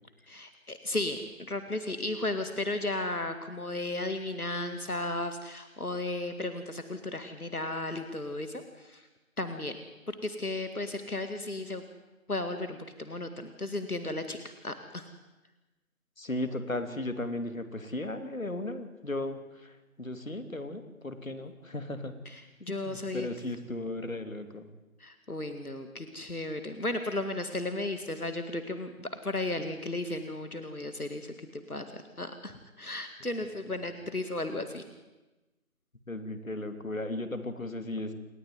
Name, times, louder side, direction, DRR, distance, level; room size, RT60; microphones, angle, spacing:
voice 1, 0.3-9.1 9.4-9.8 10.1-11.9 12.3-15.1 22.3-23.3 25.0-34.8, left 2 dB, 85° left, 8 dB, 2.3 m, -35 dB
voice 2, 16.2-22.1 22.7-24.7 36.1-38.1, left 2 dB, 65° left, 9 dB, 2.7 m, -36 dB
28.5 x 11.5 x 9.5 m, 1.1 s
figure-of-eight pair, 170°, 43 cm